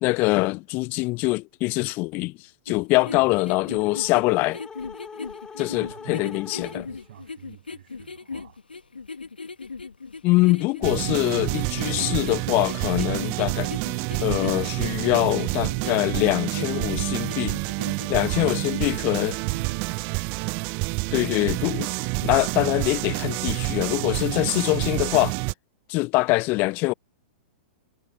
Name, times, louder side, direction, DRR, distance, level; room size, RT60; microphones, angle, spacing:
voice 1, 0.0-2.3 2.7-4.6 5.6-6.8 10.2-13.7 14.2-17.5 18.1-19.3 21.1-21.9 22.2-25.4 25.9-26.9, left 23 dB, 35° left, 0.5 m, -23 dB
sound 1, 2.7-19.2, left 4 dB, 85° left, 1.7 m, -38 dB
sound 2, 2.9-7.1, left 5 dB, 15° left, 4.3 m, -42 dB
voice 2, 5.7-8.6 18.1-20.1, right 12 dB, 60° right, 7.0 m, -44 dB
sound 3, 10.8-25.5, right 31 dB, 40° right, 0.5 m, -28 dB
figure-of-eight pair, 105°, 5 cm